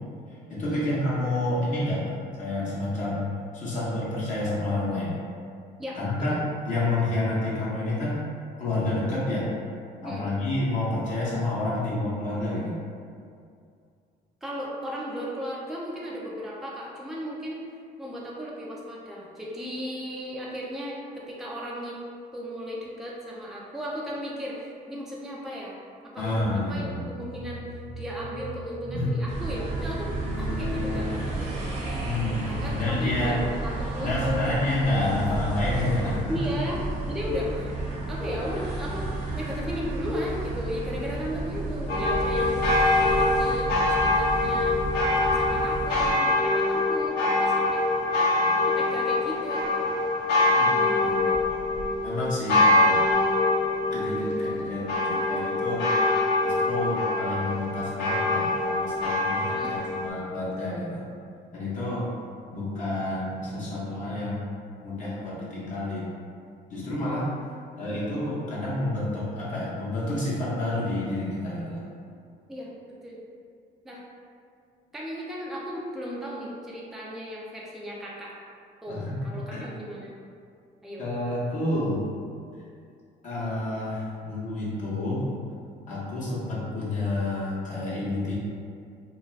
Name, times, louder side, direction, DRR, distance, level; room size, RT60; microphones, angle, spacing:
voice 1, 0.5-3.3 3.5-5.2 5.9-8.3 8.6-9.5 10.0-12.8 26.2-27.0 28.9-29.1 32.0-33.4 34.0-36.5 50.5-51.4 52.0-53.1 53.9-55.9 56.4-61.1 61.5-62.1 62.5-64.5 64.8-66.1 66.7-67.3 67.8-71.8 78.9-79.6 81.0-82.0 83.2-85.3 85.9-88.3, left 2 dB, 50° left, -8 dB, 0.7 m, -29 dB
voice 2, 14.4-17.7 18.0-22.0 22.3-25.8 26.1-31.7 32.5-34.5 36.3-37.7 38.1-42.6 42.9-47.8 48.7-49.9 59.5-59.8 72.5-72.7 73.0-73.2 73.8-74.0 74.9-78.3 78.8-80.1 80.8-81.0, equal, ahead, -5 dB, 0.4 m, -35 dB
sound 1, 26.2-31.6, right 3 dB, 80° right, 0.4 m, -40 dB
sound 2, 29.3-46.1, right 2 dB, 40° right, 0.7 m, -32 dB
sound 3, 41.9-60.1, left 2 dB, 90° left, 0.7 m, -24 dB
2.3 x 2.3 x 3.2 m, 2.4 s
cardioid pair, 110°, 17 cm